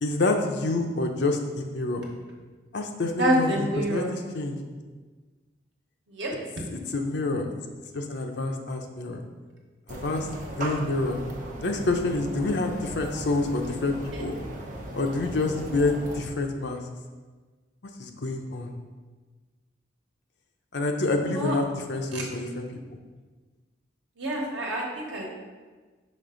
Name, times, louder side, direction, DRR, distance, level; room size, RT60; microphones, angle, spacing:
voice 1, 0.0-2.0 2.7-4.6 6.7-7.5 7.9-9.2 9.9-11.2 11.6-14.4 14.9-16.8 18.0-18.7 20.7-22.8, left 2 dB, 70° left, 3 dB, 0.6 m, -28 dB
voice 2, 3.2-4.1 6.1-6.3 14.1-14.2 21.3-21.5 22.1-22.2 24.2-25.3, right 1 dB, 85° right, -2 dB, 1.3 m, -27 dB
sound 1, 9.9-16.2, right 1 dB, 40° right, 0.8 m, -37 dB
5.3 x 4.6 x 3.8 m, 1.4 s
head